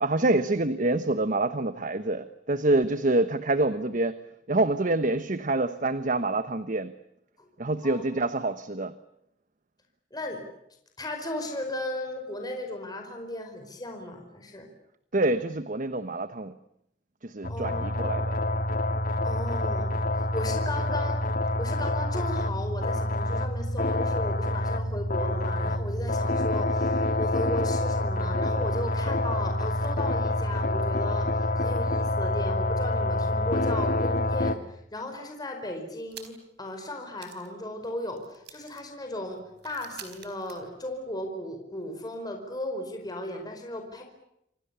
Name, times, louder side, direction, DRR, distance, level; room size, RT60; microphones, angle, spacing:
voice 1, 0.0-4.2 4.5-6.9 7.6-8.9 15.1-16.5 17.2-18.4, right 2 dB, 45° right, 12 dB, 1.1 m, -26 dB
voice 2, 10.1-10.4 11.0-14.7 17.5-17.9 19.2-19.9 20.1-44.0, left 1 dB, 20° left, 3 dB, 5.0 m, -36 dB
sound 1, 17.4-34.5, left 1 dB, 50° left, 1.7 m, -27 dB
sound 2, 36.1-36.6 36.9-37.0 37.2-41.3, right 9 dB, 60° right, 4.4 m, -50 dB
29.0 x 26.5 x 7.0 m, 0.78 s
head